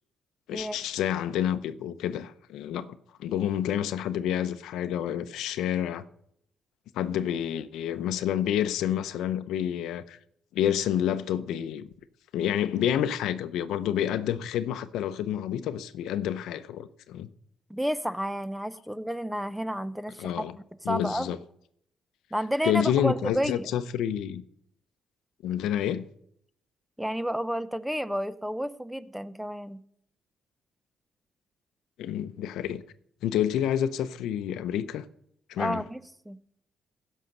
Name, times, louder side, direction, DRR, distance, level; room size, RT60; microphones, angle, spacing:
voice 1, 0.5-2.9 3.2-6.0 6.9-10.2 10.5-11.9 12.3-17.3 20.2-20.5 20.8-21.4 22.6-24.4 25.4-26.1 32.0-32.8 33.2-35.0 35.5-35.8, left 10 dB, 85° left, 0.7 m, -29 dB
voice 2, 17.7-20.4 20.9-21.4 22.3-23.7 27.0-29.8 35.6-36.4, equal, 5° right, 0.6 m, -31 dB
16.0 x 6.5 x 5.4 m
cardioid pair, 90°, 0 cm